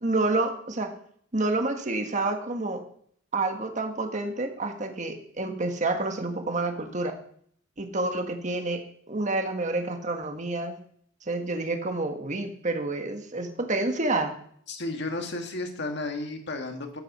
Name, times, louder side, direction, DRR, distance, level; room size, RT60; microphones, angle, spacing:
voice 1, 0.0-0.9 1.3-2.8 3.3-7.1 7.8-8.8 9.1-10.8 11.3-14.3, right 2 dB, 40° right, 5 dB, 1.5 m, -28 dB
voice 2, 14.7-17.0, left 2 dB, 60° left, 4 dB, 2.0 m, -33 dB
12.5 x 9.0 x 5.6 m, 0.62 s
head